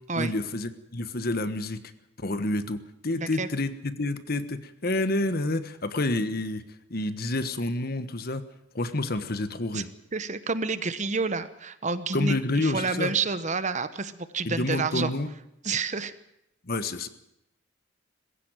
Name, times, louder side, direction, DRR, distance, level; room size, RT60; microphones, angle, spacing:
voice 1, 0.1-1.8 2.2-6.6 6.9-8.4 8.7-9.9 12.1-13.1 14.4-15.3 16.7-17.1, left 2 dB, 55° left, 11 dB, 1.4 m, -28 dB
voice 2, 3.1-3.5 9.7-9.8 10.1-15.1 15.6-16.1, right 4 dB, 40° right, 13 dB, 1.1 m, -29 dB
20.5 x 15.5 x 9.1 m, 0.82 s
head